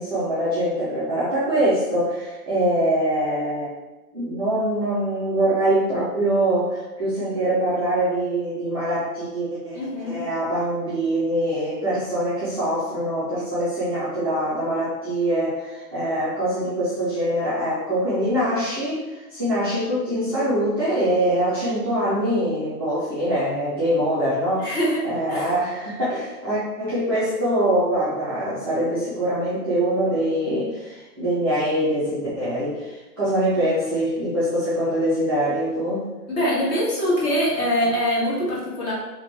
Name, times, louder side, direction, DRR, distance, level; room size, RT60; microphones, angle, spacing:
voice 1, 0.0-3.7 4.1-9.8 10.0-24.8 25.0-36.0, right 1 dB, 20° right, -13 dB, 0.3 m, -23 dB
voice 2, 9.7-10.3 24.6-25.5 36.3-38.9, equal, 25° left, -6 dB, 1.1 m, -23 dB
2.8 x 2.8 x 3.2 m, 1.1 s
figure-of-eight pair, 120°, 48 cm